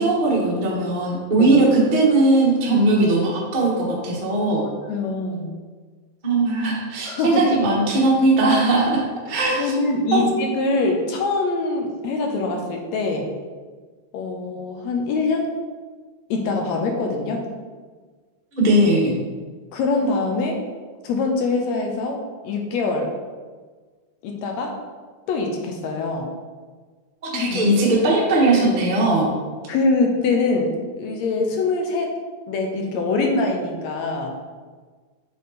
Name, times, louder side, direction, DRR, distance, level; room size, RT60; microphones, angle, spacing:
voice 1, 0.0-4.6 6.2-9.7 10.1-10.2 18.5-19.2 27.2-29.3, right 2 dB, 35° right, -4 dB, 0.7 m, -19 dB
voice 2, 4.9-5.5 7.1-7.4 9.5-13.3 14.1-15.5 16.3-17.5 19.7-20.6 21.0-23.1 24.2-24.8 25.3-26.3 27.3-27.7 29.7-32.1 32.5-34.4, left 3 dB, 75° left, 2 dB, 1.8 m, -24 dB
8.4 x 4.0 x 4.1 m, 1.4 s
omnidirectional pair, 3.5 m